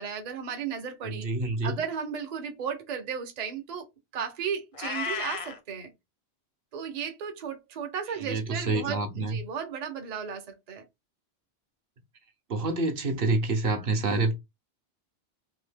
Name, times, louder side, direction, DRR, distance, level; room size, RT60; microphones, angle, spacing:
voice 1, 0.0-1.3 1.6-3.9 4.1-5.9 6.7-10.8, right 7 dB, 45° right, 0.7 m, -35 dB
voice 2, 1.0-1.8 8.2-9.4 12.5-14.3, right 3 dB, 65° right, 0.9 m, -27 dB
Meow, 4.7-5.6, left 5 dB, 45° left, 0.4 m, -33 dB
2.8 x 2.7 x 3.4 m
omnidirectional pair, 1.1 m